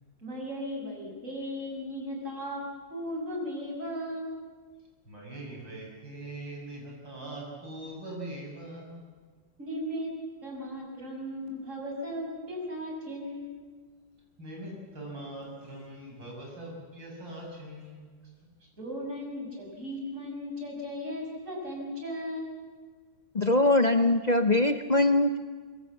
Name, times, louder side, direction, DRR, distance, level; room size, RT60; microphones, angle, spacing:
voice 1, 0.2-4.3 9.6-10.1 10.4-13.6 18.8-22.5, equal, 40° right, -1 dB, 6.2 m, -36 dB
voice 2, 5.0-9.1 14.4-18.1, right 1 dB, 75° right, -1 dB, 6.9 m, -42 dB
voice 3, 23.3-25.4, left 2 dB, 55° left, 8 dB, 0.4 m, -22 dB
24.0 x 22.5 x 7.2 m, 1.5 s
omnidirectional pair, 2.0 m